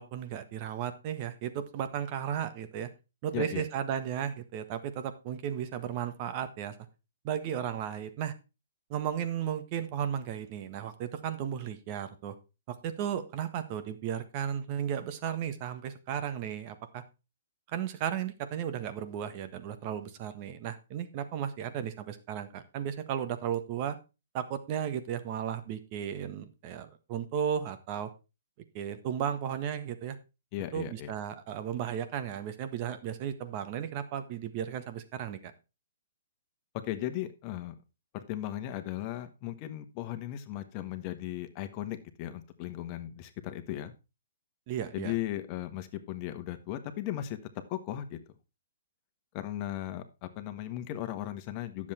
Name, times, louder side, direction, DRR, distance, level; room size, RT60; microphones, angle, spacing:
voice 1, 0.0-2.9 3.2-6.8 7.2-8.3 8.9-12.3 12.7-17.0 17.7-24.0 24.3-28.1 28.7-30.2 30.7-35.5 44.7-45.1, right 9 dB, 40° right, 11 dB, 1.5 m, -34 dB
voice 2, 3.3-3.6 30.5-31.1 36.8-37.7 38.1-43.9 44.9-47.4 47.7-48.2 49.3-51.9, left 13 dB, 35° left, 9 dB, 1.4 m, -37 dB
10.5 x 7.5 x 4.4 m, 0.28 s
hypercardioid pair, 140°, 0 cm